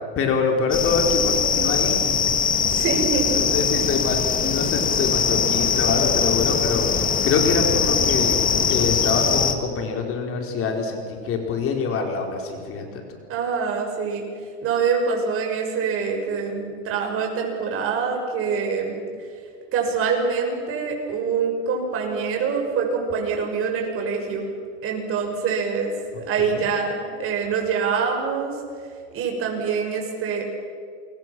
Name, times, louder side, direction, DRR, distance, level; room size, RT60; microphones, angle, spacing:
voice 1, 0.2-2.1 3.3-6.9 7.2-8.4 8.7-13.2 26.4-26.6, left 4 dB, 40° left, 2 dB, 4.3 m, -25 dB
sound 1, 0.7-9.5, left 6 dB, 25° left, 2.0 m, -21 dB
voice 2, 2.6-3.3 13.3-14.3 14.6-19.0 19.7-24.5 24.8-28.6 29.1-30.4, right 5 dB, 40° right, 2 dB, 6.4 m, -25 dB
28.5 x 22.5 x 6.2 m, 2.2 s
supercardioid pair, 125°, 35 cm